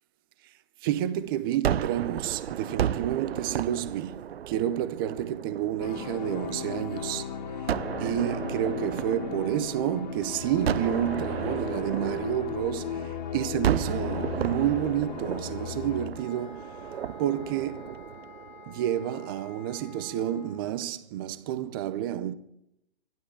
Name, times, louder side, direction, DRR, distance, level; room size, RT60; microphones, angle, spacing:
voice 1, 0.8-7.3 7.6-7.7 8.0-16.8 17.2-18.0 18.6-22.3, right 11 dB, 20° right, 0.7 m, -30 dB
Gunshot gunfire, 1.6-6.8 7.7-10.1 10.7-13.1 13.6-18.8, right 10 dB, 80° right, 0.6 m, -34 dB
sound 1, 5.8-16.1, left 7 dB, 45° left, 2.2 m, -36 dB
sound 2, 16.1-20.8, left 3 dB, 20° left, 0.9 m, -49 dB
12.0 x 12.0 x 8.7 m
hypercardioid pair, 155°, 31 cm